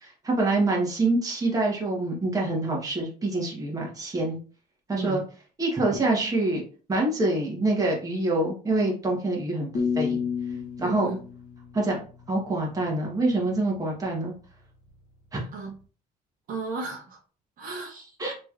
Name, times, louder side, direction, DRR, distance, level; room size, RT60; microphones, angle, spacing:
voice 1, 0.0-4.4 4.9-5.2 5.6-6.6 6.9-9.7 9.9-10.2 10.8-11.1 11.7-12.0 12.3-14.3 15.3-15.4 18.2-18.3, right 2 dB, 20° right, -2 dB, 1.1 m, -25 dB
sound 1, 9.7-12.7, left 6 dB, 45° left, 1.0 m, -31 dB
voice 2, 10.8-11.2 15.5-15.7 16.5-17.2 17.6-18.1, right 4 dB, 55° right, 0 dB, 1.0 m, -34 dB
3.0 x 3.0 x 2.4 m, 0.38 s
cardioid pair, 110°, 17 cm